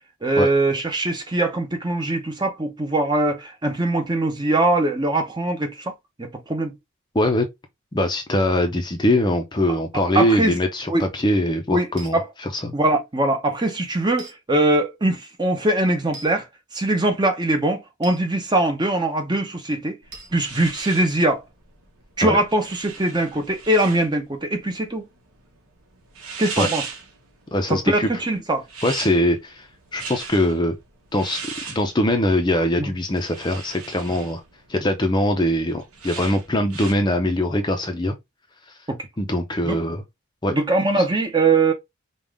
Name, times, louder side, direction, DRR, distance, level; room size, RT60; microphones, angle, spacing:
voice 1, 0.2-5.9 6.2-6.7 10.1-10.6 10.9-11.0 11.7-11.9 12.1-12.3 12.7-16.5 16.7-20.0 20.3-21.4 22.2-25.0 26.4-26.8 27.7-28.6 32.8-32.9 38.9-39.0 39.6-39.8 40.5-41.7, right 2 dB, 20° right, 0.8 m, -22 dB
voice 2, 7.1-7.5 7.9-12.8 22.2-22.4 26.6-26.7 27.5-28.1 28.8-29.7 29.9-30.8 31.1-31.4 31.7-34.4 34.7-38.1 39.2-40.0 40.4-40.6, left 1 dB, 20° left, 0.6 m, -22 dB
sound 1, 12.0-12.2 14.2-14.4 16.1-16.3 18.0-18.2 20.1-20.3, right 3 dB, 50° right, 1.3 m, -40 dB
sound 2, 20.0-36.9, right 5 dB, 75° right, 1.3 m, -38 dB
5.3 x 2.4 x 3.5 m
head